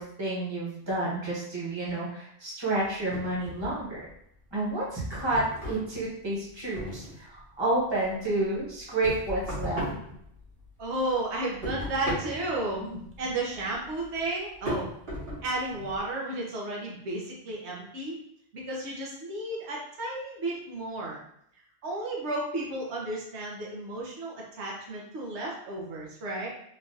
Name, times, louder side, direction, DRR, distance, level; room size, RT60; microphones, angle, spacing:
voice 1, 0.0-4.1 4.5-9.8 12.8-13.0, right 2 dB, 25° right, -6 dB, 1.0 m, -30 dB
sound 1, 3.1-4.1 4.5-7.4 7.8-10.8 11.1-16.0, equal, 60° right, 1.6 m, -37 dB
voice 2, 10.8-12.9 13.2-14.9 15.4-18.2 18.5-21.2 21.8-26.5, right 2 dB, 80° right, -3 dB, 1.1 m, -33 dB
3.6 x 2.3 x 2.6 m, 0.70 s
omnidirectional pair, 1.1 m